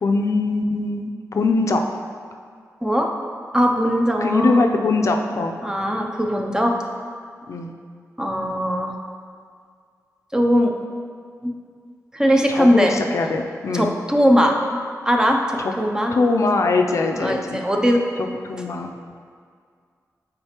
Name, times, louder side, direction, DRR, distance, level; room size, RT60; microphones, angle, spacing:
voice 1, 0.0-1.8 4.2-5.6 7.5-7.7 12.5-13.9 15.6-15.7 16.1-17.6 18.2-18.9, left 3 dB, 55° left, 4 dB, 0.4 m, -22 dB
voice 2, 3.5-4.7 5.6-6.8 8.2-8.9 10.3-10.7 11.4-11.5 12.1-13.0 13.7-14.6 15.0-16.1 17.2-18.0, equal, 10° right, 2 dB, 0.5 m, -19 dB
8.8 x 3.9 x 2.9 m, 2.1 s
wide cardioid pair, 135°, 6 cm